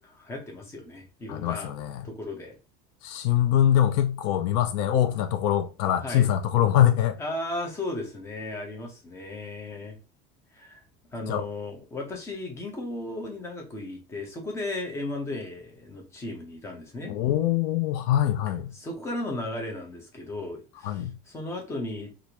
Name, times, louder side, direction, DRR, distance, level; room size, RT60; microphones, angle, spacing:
voice 1, 0.0-1.7 2.0-2.5 6.0-6.3 7.2-10.0 10.5-10.8 11.1-17.2 18.7-22.1, left 2 dB, 15° left, 0.7 m, -35 dB
voice 2, 1.3-2.0 3.0-7.2 11.3-11.4 17.1-18.7 20.8-21.1, left 11 dB, 75° left, 0.4 m, -23 dB
3.1 x 2.5 x 2.8 m
cardioid pair, 170°, 19 cm